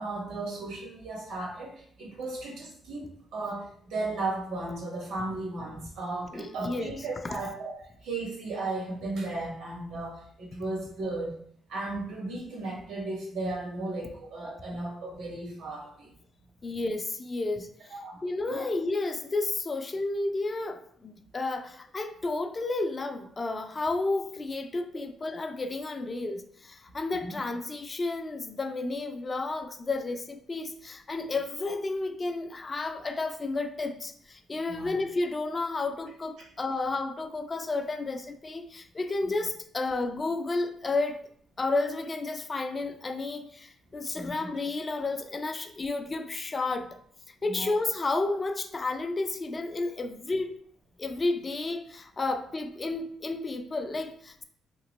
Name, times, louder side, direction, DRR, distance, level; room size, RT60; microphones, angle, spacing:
voice 1, 0.0-3.0 3.3-11.4 11.7-16.1 17.9-18.2 18.5-18.7 24.9-25.0 27.1-27.4 34.7-34.9 39.2-39.3 44.1-44.5 47.5-47.7, right 2 dB, 85° right, 1.3 m, -35 dB
voice 2, 6.3-7.0 7.3-7.4 16.6-17.9 18.2-41.2 41.6-47.0 47.3-50.6 51.0-54.4, left 3 dB, 25° left, 0.3 m, -32 dB
3.4 x 2.9 x 3.0 m
cardioid pair, 150°, 0 cm